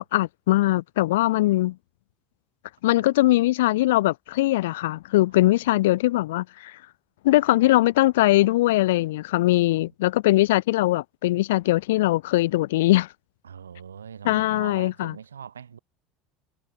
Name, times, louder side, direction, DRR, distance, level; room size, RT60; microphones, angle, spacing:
voice 1, 0.0-1.8 2.8-6.7 7.2-13.1 14.3-15.1, left 17 dB, 65° left, 0.3 m, -21 dB
voice 2, 5.3-5.9 9.5-9.9 13.4-15.8, right 7 dB, 75° right, 1.2 m, -43 dB
figure-of-eight pair, 70°, 0 cm